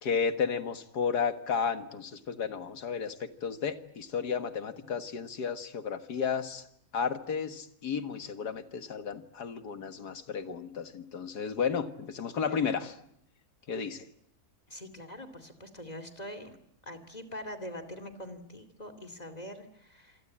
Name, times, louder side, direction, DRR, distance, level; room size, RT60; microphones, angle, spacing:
voice 1, 0.0-6.6 6.9-13.0 13.7-14.0, left 6 dB, 85° left, 9 dB, 2.2 m, -33 dB
voice 2, 14.7-16.6 16.8-20.2, left 1 dB, 25° left, 8 dB, 2.7 m, -43 dB
27.0 x 24.0 x 8.8 m, 0.74 s
omnidirectional pair, 1.7 m